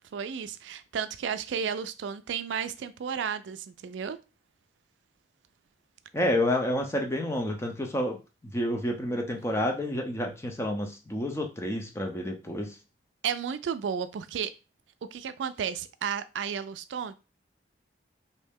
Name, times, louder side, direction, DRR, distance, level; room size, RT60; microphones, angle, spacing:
voice 1, 0.1-4.2 13.2-14.5 15.1-17.1, right 7 dB, 90° right, 0.3 m, -33 dB
voice 2, 6.1-8.2 8.5-12.7, left 1 dB, 15° left, 0.6 m, -29 dB
3.1 x 2.7 x 3.5 m
head